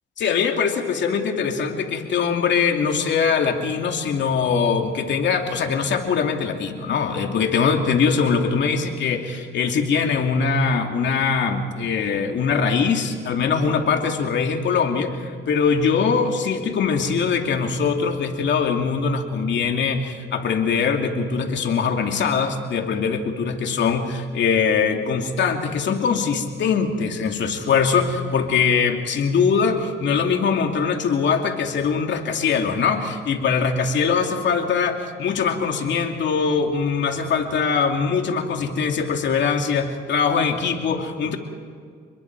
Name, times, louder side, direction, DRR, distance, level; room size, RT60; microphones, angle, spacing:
voice 1, 0.2-41.4, left 5 dB, 65° left, 3 dB, 2.7 m, -22 dB
29.5 x 21.5 x 4.8 m, 2.1 s
cardioid pair, 90°, 20 cm